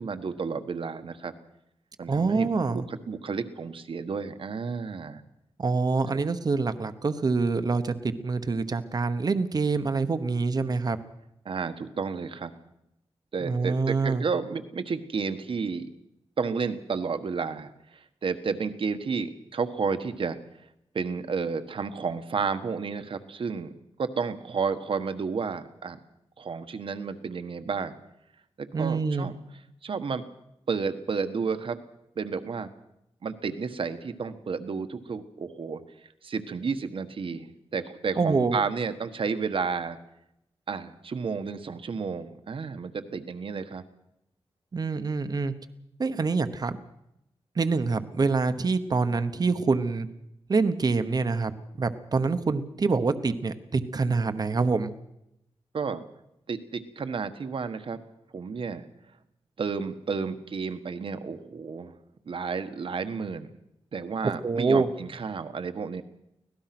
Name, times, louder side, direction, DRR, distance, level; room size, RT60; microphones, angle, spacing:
voice 1, 0.0-1.3 2.0-5.2 6.1-6.2 11.4-12.6 13.3-15.9 16.4-20.4 20.9-23.7 24.0-26.0 26.4-27.9 28.6-29.4 29.8-30.2 30.7-31.8 32.2-32.7 33.2-35.8 36.2-40.0 40.7-43.8 55.7-56.0 56.5-58.0 58.3-58.9 59.6-61.9 62.3-63.5 63.9-66.0, right 5 dB, 60° right, 9 dB, 1.4 m, -31 dB
voice 2, 2.1-2.8 5.6-11.0 13.4-14.2 28.7-29.3 38.2-38.6 44.7-45.5 46.0-46.8 47.6-50.1 50.5-51.5 51.8-54.9 64.2-64.9, right 4 dB, 40° right, 10 dB, 1.1 m, -26 dB
25.0 x 18.0 x 6.0 m, 0.83 s
wide cardioid pair, 170°, 10 cm